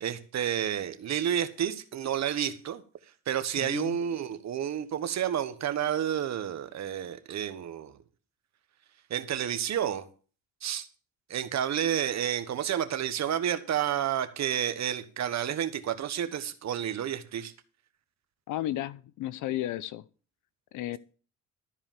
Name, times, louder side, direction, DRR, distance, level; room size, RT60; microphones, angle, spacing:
voice 1, 0.0-2.8 3.3-8.0 9.1-10.0 10.6-10.9 11.3-17.5, right 10 dB, 65° right, 1.3 m, -30 dB
voice 2, 3.6-4.0 18.5-20.0 20.7-21.0, left 14 dB, 85° left, 0.7 m, -33 dB
13.0 x 4.9 x 7.4 m
cardioid pair, 90°, 30 cm